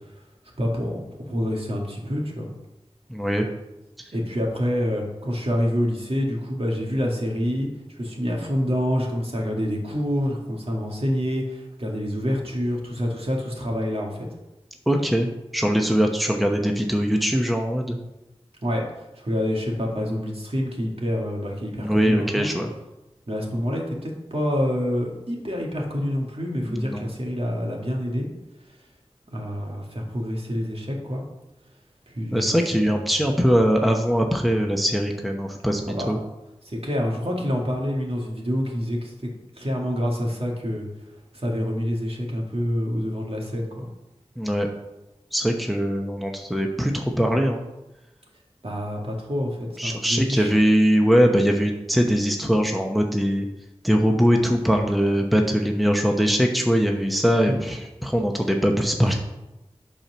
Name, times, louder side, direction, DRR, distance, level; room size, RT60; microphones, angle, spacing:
voice 1, 0.6-2.6 4.1-7.7 7.9-14.3 18.6-18.8 19.2-22.5 23.3-28.3 29.3-31.2 32.1-33.0 35.9-36.1 36.8-39.1 39.6-40.9 41.3-43.9 48.6-50.5 57.5-57.6 59.0-59.2, equal, 60° right, -1 dB, 2.0 m, -27 dB
voice 2, 3.1-3.5 14.9-15.3 15.5-18.0 21.8-22.7 26.6-27.1 32.3-36.2 44.4-44.7 45.3-47.6 49.8-53.5 53.8-59.2, equal, ahead, 2 dB, 0.9 m, -21 dB
8.6 x 4.4 x 6.2 m, 0.97 s
wide cardioid pair, 50°, 11 cm